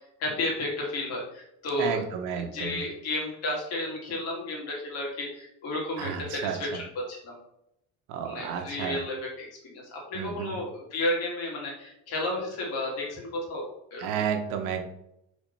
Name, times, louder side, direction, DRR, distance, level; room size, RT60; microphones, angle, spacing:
voice 1, 0.2-2.0 2.4-7.4 8.2-14.2, left 1 dB, 50° left, -3 dB, 2.6 m, -32 dB
voice 2, 1.8-2.8 6.0-6.8 8.1-9.0 10.1-10.6 14.0-14.8, right 7 dB, 75° right, 5 dB, 1.2 m, -32 dB
5.3 x 4.2 x 5.5 m, 0.80 s
cardioid pair, 180°, 31 cm